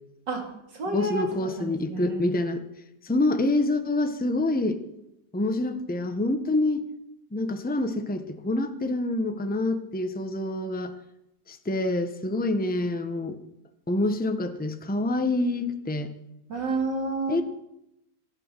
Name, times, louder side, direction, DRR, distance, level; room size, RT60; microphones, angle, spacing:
voice 1, 0.3-2.3 16.5-17.4, right 2 dB, 70° right, 3 dB, 3.3 m, -30 dB
voice 2, 0.9-2.6 3.0-4.8 5.3-6.8 7.3-10.9 11.5-13.4 13.9-16.1 17.3-17.4, left 2 dB, 5° left, 7 dB, 0.8 m, -26 dB
24.5 x 8.6 x 6.8 m, 0.85 s
omnidirectional pair, 2.0 m